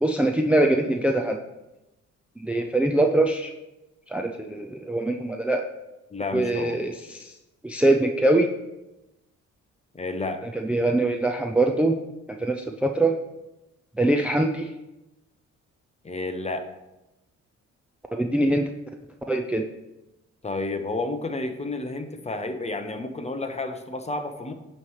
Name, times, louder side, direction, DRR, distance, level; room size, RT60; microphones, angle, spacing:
voice 1, 0.0-1.4 2.4-3.5 4.1-5.6 6.3-7.3 7.6-8.5 10.5-12.0 12.3-13.2 14.0-14.7 18.1-18.7 19.3-19.6, right 1 dB, 5° right, 4 dB, 0.5 m, -23 dB
voice 2, 6.1-6.8 9.9-10.4 16.0-16.6 20.4-24.5, left 2 dB, 20° left, 7 dB, 0.8 m, -31 dB
8.7 x 3.2 x 6.3 m, 0.97 s
cardioid pair, 90°, 30 cm